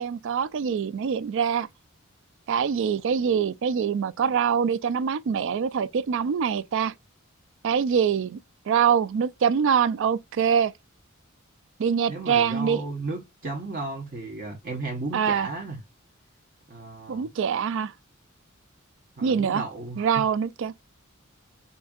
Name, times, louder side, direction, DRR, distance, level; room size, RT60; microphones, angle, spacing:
voice 1, 0.0-1.7 2.5-6.9 7.6-8.4 8.7-10.7 11.8-12.8 15.1-15.5 17.1-17.9 19.2-19.6 20.0-20.7, right 7 dB, 65° right, 0.4 m, -24 dB
voice 2, 12.1-15.8 16.7-17.3 19.2-20.3, right 3 dB, 45° right, 0.9 m, -34 dB
5.3 x 2.6 x 2.3 m
head